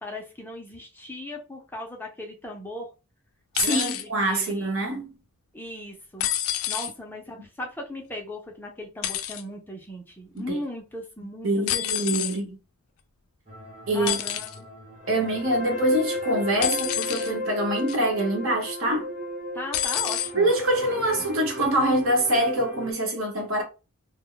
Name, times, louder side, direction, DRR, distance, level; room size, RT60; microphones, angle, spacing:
voice 1, 0.0-2.9 3.6-4.8 5.5-6.3 6.7-11.5 12.2-12.4 13.9-14.7 19.5-20.5 20.9-21.0, left 1 dB, 10° left, 0.5 m, -37 dB
sound 1, 3.5-4.0 6.2-6.9 9.0-9.4 11.7-12.4 14.1-14.6 16.6-17.3 17.9-18.2 19.7-20.3 21.3-21.4, left 11 dB, 80° left, 0.4 m, -28 dB
voice 2, 3.5-5.1 10.3-10.6 11.4-12.6 13.9-14.2 15.1-19.1 20.3-23.6, right 1 dB, 65° right, 0.9 m, -25 dB
sound 2, 13.5-22.9, left 1 dB, 30° right, 0.8 m, -35 dB
2.2 x 2.1 x 3.7 m
head